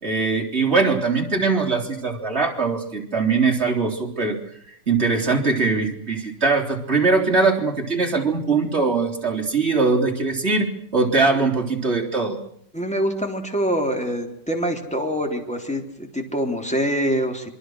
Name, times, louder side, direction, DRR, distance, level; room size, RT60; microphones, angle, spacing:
voice 1, 0.0-4.4 4.9-12.4, right 4 dB, 35° right, 1 dB, 3.7 m, -21 dB
voice 2, 12.7-17.5, equal, 5° left, 3 dB, 3.5 m, -25 dB
27.0 x 23.5 x 6.5 m, 0.67 s
omnidirectional pair, 1.8 m